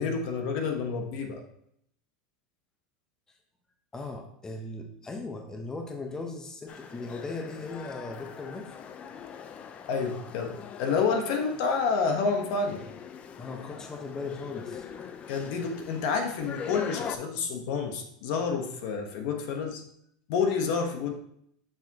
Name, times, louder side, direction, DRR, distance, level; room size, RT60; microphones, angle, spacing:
voice 1, 0.0-1.4 9.9-12.8 15.3-19.8 20.3-21.1, left 5 dB, 65° left, 4 dB, 1.1 m, -29 dB
voice 2, 3.9-8.7 13.4-15.1, left 3 dB, 15° left, 3 dB, 1.0 m, -38 dB
sound 1, 6.7-17.2, left 7 dB, 35° left, 0.5 m, -42 dB
7.0 x 6.1 x 2.9 m, 0.71 s
supercardioid pair, 115°, 4 cm